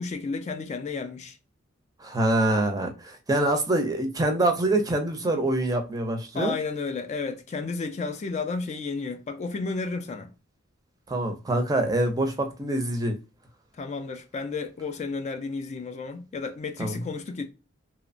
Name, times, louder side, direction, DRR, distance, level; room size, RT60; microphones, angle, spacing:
voice 1, 0.0-1.4 6.3-10.3 13.8-17.5, left 4 dB, 35° left, 0.3 m, -32 dB
voice 2, 2.0-6.5 11.1-13.2 16.8-17.0, right 1 dB, 20° right, 0.5 m, -25 dB
2.8 x 2.1 x 2.5 m
head